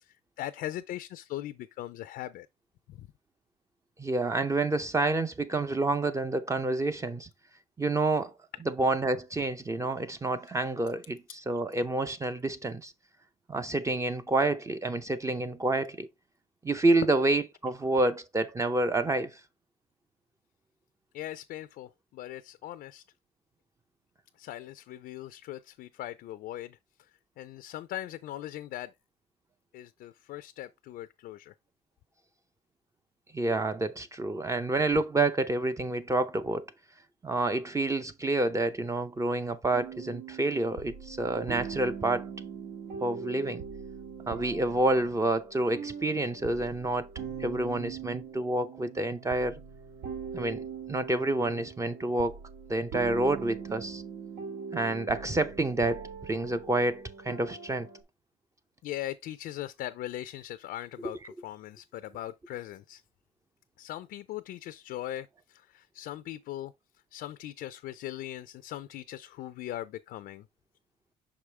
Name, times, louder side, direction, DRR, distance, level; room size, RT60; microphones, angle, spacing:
voice 1, 0.0-2.5 2.9-3.1 21.1-23.0 24.4-26.8 27.4-28.9 29.7-31.5 58.8-63.0 63.8-66.7 67.1-70.5, left 13 dB, 65° left, 0.4 m, -40 dB
voice 2, 4.0-7.3 7.8-8.3 8.7-12.9 13.5-16.1 16.6-19.3 33.3-36.6 37.2-42.3 43.0-43.6 44.3-47.1 47.4-49.6 50.3-52.4 52.7-54.0 54.7-57.9, right 2 dB, 20° right, 0.5 m, -28 dB
sound 1, 39.7-58.0, right 6 dB, 80° right, 1.6 m, -42 dB
6.0 x 4.9 x 3.2 m
cardioid pair, 110°, 17 cm